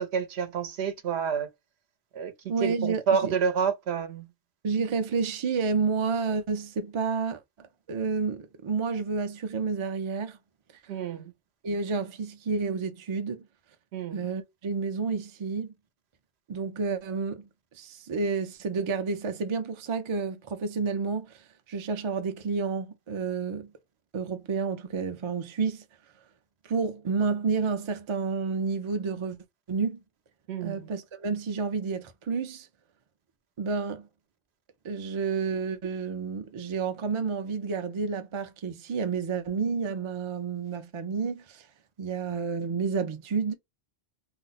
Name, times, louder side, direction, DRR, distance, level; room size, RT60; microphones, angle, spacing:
voice 1, 0.0-1.5 2.1-2.3 2.6-4.3 10.9-11.3 13.9-14.3 30.5-30.9, right 6 dB, 75° right, 0.9 m, -29 dB
voice 2, 2.5-3.3 4.6-10.4 11.6-13.4 14.1-15.7 16.5-17.4 17.7-23.7 24.1-25.8 26.7-29.4 29.7-30.0 30.6-32.7 33.6-34.1 34.8-41.7 42.0-43.5, right 5 dB, 50° right, 0.3 m, -30 dB
2.5 x 2.0 x 3.9 m
omnidirectional pair, 1.1 m